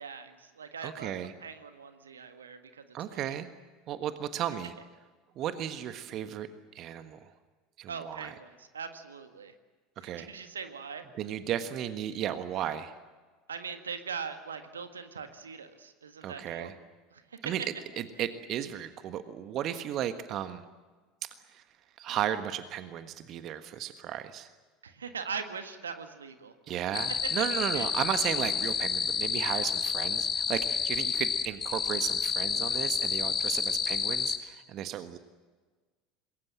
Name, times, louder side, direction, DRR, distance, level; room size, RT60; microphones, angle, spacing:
voice 1, 0.0-2.8 3.1-3.3 7.9-9.5 10.0-11.0 13.5-16.7 17.1-17.2 24.8-26.5 27.2-27.3 27.7-27.9, right 6 dB, 75° right, 8 dB, 1.7 m, -41 dB
voice 2, 0.8-1.3 2.9-3.5 3.9-4.7 5.4-6.5 6.7-7.3 7.8-8.3 10.0-10.3 11.2-12.9 16.2-16.7 17.4-17.6 18.0-20.6 21.2-21.6 22.0-24.5 26.7-35.2, right 10 dB, 45° right, 10 dB, 1.4 m, -34 dB
sound 1, 26.9-34.4, left 6 dB, 30° left, 1.9 m, -30 dB
26.5 x 21.5 x 7.6 m, 1.4 s
figure-of-eight pair, 75°, 0 cm